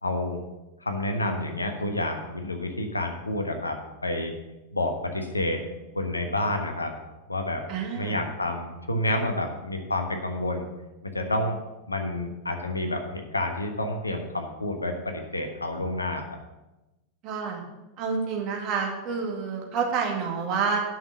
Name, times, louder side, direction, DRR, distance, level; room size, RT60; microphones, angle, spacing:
voice 1, 0.0-0.4 0.8-3.8 4.0-4.3 4.7-5.6 5.9-6.9 7.3-7.6 7.9-10.6 11.1-11.6 11.9-16.2, left 1 dB, 80° left, 4 dB, 1.2 m, -29 dB
voice 2, 7.7-8.2 17.2-17.6 18.0-20.8, right 5 dB, 40° right, 0 dB, 2.2 m, -28 dB
9.3 x 6.1 x 6.5 m, 1.0 s
figure-of-eight pair, 90°, 0 cm